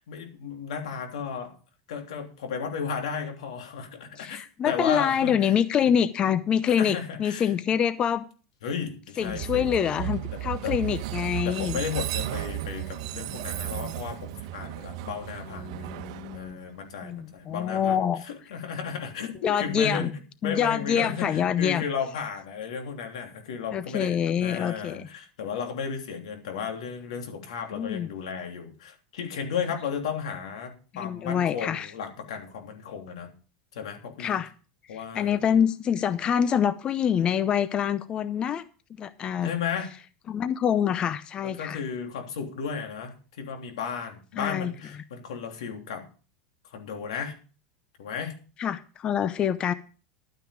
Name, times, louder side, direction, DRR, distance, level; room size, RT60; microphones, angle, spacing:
voice 1, 0.1-1.5 1.9-5.5 5.8-5.9 6.8-7.5 8.6-9.7 10.3-10.7 11.4-15.9 16.3-18.0 18.2-20.1 20.4-33.3 33.7-34.4 34.9-35.4 39.4-39.9 41.4-46.0 46.7-47.4 48.0-48.4, left 6 dB, 90° left, 4 dB, 3.2 m, -34 dB
voice 2, 4.2-8.2 9.2-11.8 15.5-16.6 17.0-18.2 19.4-20.1 20.4-21.8 23.7-25.1 27.7-28.1 30.9-31.9 34.2-34.5 34.9-38.6 39.0-39.5 40.3-41.8 44.4-44.7 48.6-49.7, left 8 dB, 30° left, 15 dB, 0.6 m, -26 dB
Train, 9.2-17.2, right 15 dB, 65° right, 1.2 m, -34 dB
12.0 x 9.3 x 5.0 m, 0.37 s
supercardioid pair, 140°, 3 cm